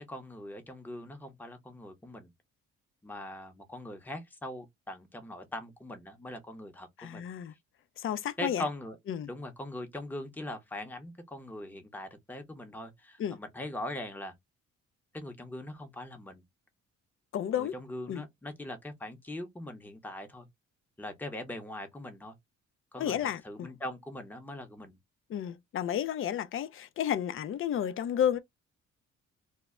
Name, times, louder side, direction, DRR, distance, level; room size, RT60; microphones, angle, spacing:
voice 1, 0.1-2.3 3.0-7.2 8.4-9.0 9.3-14.3 15.1-16.4 17.6-20.5 21.0-22.4 22.9-23.2 23.4-25.0, left 1 dB, 5° left, 0.7 m, -41 dB
voice 2, 7.0-7.5 8.0-8.6 9.1-9.3 13.2-13.4 17.3-17.8 18.1-18.2 23.0-23.7 25.3-28.4, left 9 dB, 45° left, 0.4 m, -32 dB
2.1 x 2.1 x 3.5 m
cardioid pair, 90°, 30 cm